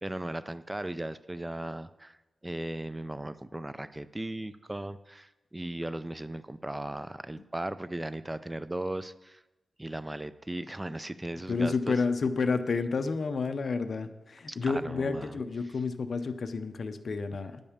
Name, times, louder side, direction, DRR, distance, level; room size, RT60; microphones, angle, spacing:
voice 1, 0.0-2.2 2.4-9.4 9.8-12.0 14.5-15.4, right 1 dB, 15° right, 14 dB, 0.3 m, -37 dB
voice 2, 11.5-17.6, left 4 dB, 50° left, 9 dB, 0.6 m, -30 dB
9.4 x 5.2 x 7.2 m, 1.0 s
wide cardioid pair, 140°, 0 cm